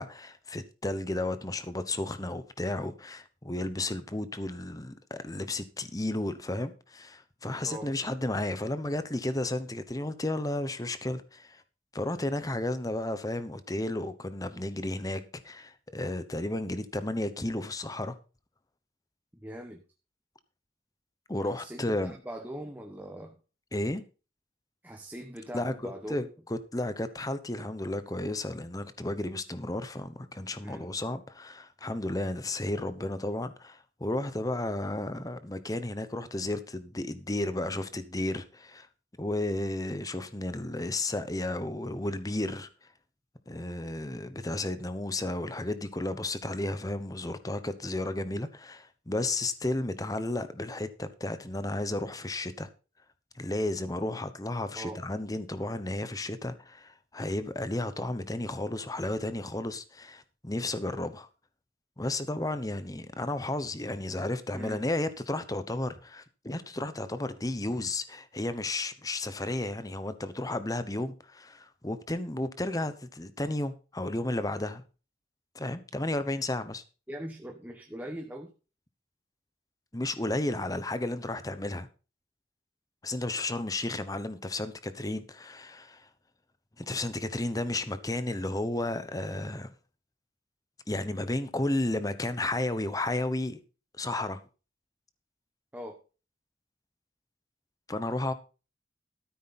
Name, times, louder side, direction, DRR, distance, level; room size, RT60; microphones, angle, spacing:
voice 1, 0.0-11.6 11.9-18.2 21.3-22.2 23.7-24.0 25.5-38.9 39.2-42.7 43.5-52.7 53.3-61.3 62.0-74.8 75.5-76.8 79.9-81.9 83.0-86.1 86.8-89.7 90.9-93.6 93.9-94.4 97.9-98.3, left 2 dB, 20° left, 1.0 m, -33 dB
voice 2, 7.6-7.9 19.4-19.8 21.4-23.4 24.8-26.3 30.6-30.9 54.8-55.0 64.5-64.8 77.1-78.5 95.7-96.0, equal, 10° right, 1.1 m, -41 dB
13.5 x 8.4 x 4.2 m
head